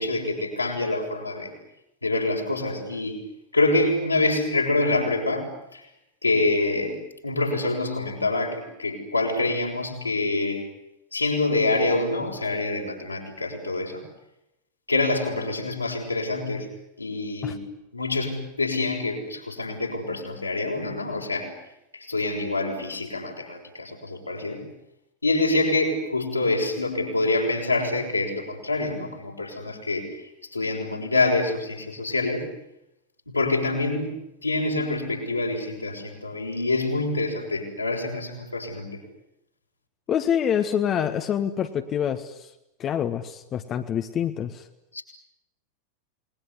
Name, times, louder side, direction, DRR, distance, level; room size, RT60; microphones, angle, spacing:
voice 1, 0.0-1.5 2.0-3.2 3.5-5.8 6.2-10.7 11.1-14.0 14.9-16.7 17.0-17.7 17.9-21.5 21.9-24.6 25.2-30.2 30.5-32.5 33.3-34.2 34.4-39.0 44.9-45.0, left 2 dB, 85° left, -1 dB, 6.6 m, -26 dB
voice 2, 40.1-42.5 42.8-44.6, left 9 dB, 30° left, 7 dB, 1.6 m, -26 dB
28.5 x 21.0 x 9.8 m, 0.87 s
figure-of-eight pair, 90°, 0 cm